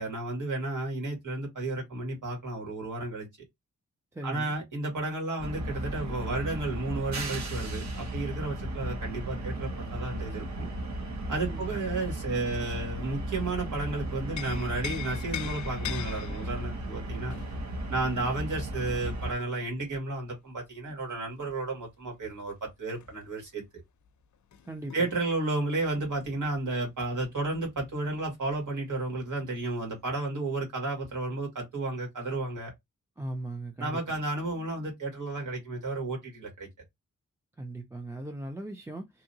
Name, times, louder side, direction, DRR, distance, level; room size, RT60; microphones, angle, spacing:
voice 1, 0.0-3.3 4.2-10.7 11.3-17.4 17.9-23.6 24.9-32.7 33.8-36.7, right 2 dB, 80° right, 1.9 m, -32 dB
voice 2, 4.1-4.5 11.5-11.8 24.6-25.1 33.2-34.0 37.6-39.2, right 1 dB, 10° right, 0.3 m, -38 dB
sound 1, 5.4-19.3, right 1 dB, 60° right, 0.9 m, -35 dB
sound 2, 13.0-13.7 14.1-19.6 21.5-27.3 27.6-27.7 28.1-28.8 29.6-29.7, left 9 dB, 70° left, 0.5 m, -43 dB
2.9 x 2.7 x 2.7 m
wide cardioid pair, 170°, 31 cm